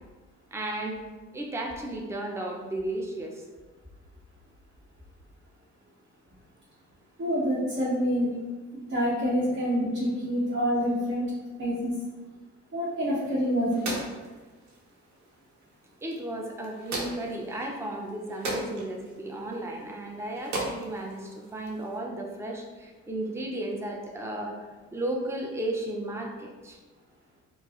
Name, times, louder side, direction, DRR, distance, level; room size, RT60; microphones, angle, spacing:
voice 1, 0.5-1.0 1.3-3.4 16.0-24.6 24.9-26.8, right 1 dB, 10° right, 1 dB, 0.5 m, -34 dB
voice 2, 7.2-8.3 8.7-11.3 11.6-12.0 12.7-13.9, equal, 45° right, -9 dB, 1.0 m, -27 dB
sound 1, 13.0-22.0, right 2 dB, 70° right, 0.9 m, -39 dB
4.3 x 2.0 x 2.9 m, 1.3 s
cardioid pair, 85°, 30 cm